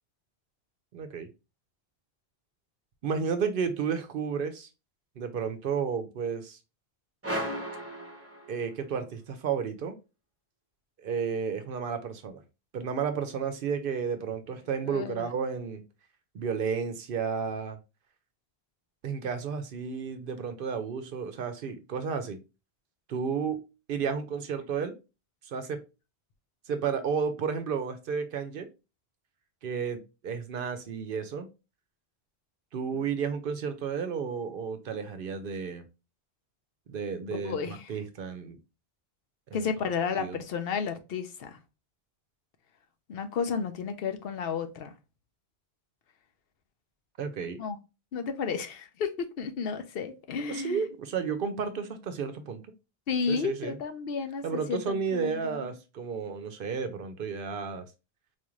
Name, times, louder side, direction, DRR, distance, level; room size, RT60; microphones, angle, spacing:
voice 1, 0.9-1.3 3.0-4.7 5.2-6.6 8.5-10.0 11.0-12.4 12.7-15.8 16.3-17.8 19.0-22.4 23.1-23.6 23.9-25.0 25.4-25.8 26.7-28.7 29.6-31.5 32.7-35.8 36.9-38.6 39.5-39.9 40.2-40.4 47.2-47.6 50.5-52.6 53.3-53.8 54.4-57.9, right 6 dB, 65° right, 0.7 m, -32 dB
sound 1, 7.2-9.0, equal, 15° right, 0.7 m, -35 dB
voice 2, 14.9-15.3 37.3-37.9 39.5-41.6 43.1-44.9 47.6-47.8 48.1-50.8 53.1-55.6, left 6 dB, 70° left, 0.8 m, -32 dB
4.0 x 2.5 x 3.0 m
omnidirectional pair, 1.1 m